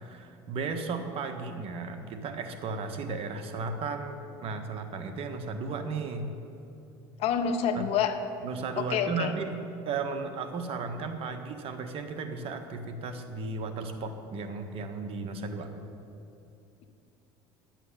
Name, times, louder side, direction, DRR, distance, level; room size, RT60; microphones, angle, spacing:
voice 1, 0.0-6.3 7.7-7.8 8.4-9.5 9.8-15.7, right 4 dB, 55° right, 6 dB, 1.5 m, -35 dB
voice 2, 7.2-8.2 8.8-9.3, left 7 dB, 60° left, 6 dB, 1.2 m, -27 dB
11.0 x 8.9 x 8.7 m, 2.8 s
supercardioid pair, 100°, 12 cm